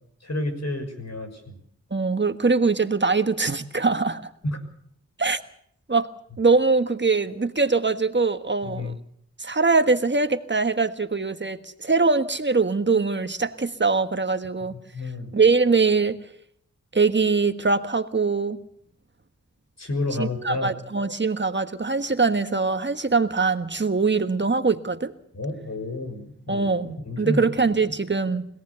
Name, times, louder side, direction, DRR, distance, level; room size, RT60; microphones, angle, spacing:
voice 1, 0.2-1.6 4.4-4.6 8.6-9.0 14.7-15.3 19.8-20.7 25.3-26.7 27.0-27.5, left 2 dB, 60° left, 5 dB, 6.2 m, -30 dB
voice 2, 1.9-4.2 5.2-5.4 5.9-6.1 6.4-8.9 9.4-14.8 15.3-16.2 16.9-18.6 20.2-25.1 26.5-28.5, right 4 dB, 40° right, 9 dB, 1.5 m, -22 dB
25.5 x 18.0 x 7.0 m, 0.67 s
cardioid pair, 55°, 29 cm